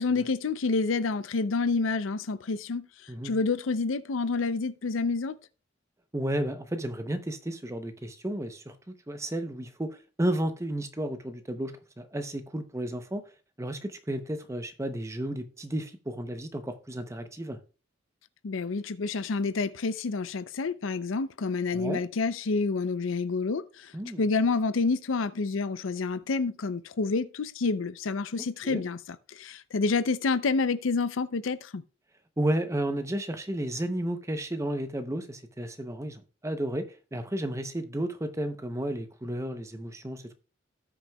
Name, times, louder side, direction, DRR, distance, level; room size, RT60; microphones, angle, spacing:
voice 1, 0.0-2.8 3.2-5.4 18.4-23.9 24.2-29.0 29.3-31.8, left 4 dB, 85° left, 0.5 m, -28 dB
voice 2, 6.1-8.7 9.1-13.2 13.6-17.6 21.7-22.0 23.9-24.2 28.4-28.8 32.4-40.2, right 1 dB, 15° right, 0.7 m, -32 dB
17.5 x 6.2 x 2.3 m
head